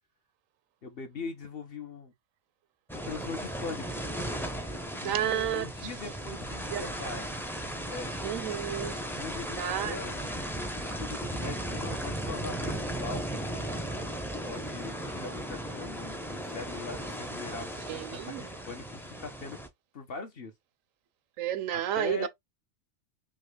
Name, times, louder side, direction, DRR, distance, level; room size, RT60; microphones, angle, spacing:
voice 1, 0.8-2.1 2.9-4.0 5.0-7.3 7.9-8.1 9.1-10.3 10.8-13.2 14.4-19.6 19.9-20.5 21.7-22.3, left 4 dB, 50° left, 1.0 m, -41 dB
sound 1, 2.9-19.7, right 1 dB, 5° left, 0.4 m, -36 dB
voice 2, 5.0-5.7 6.7-7.1 8.2-9.0 9.6-10.1 17.9-18.5 21.4-22.3, right 10 dB, 75° right, 1.0 m, -31 dB
5.6 x 2.3 x 3.3 m
omnidirectional pair, 1.4 m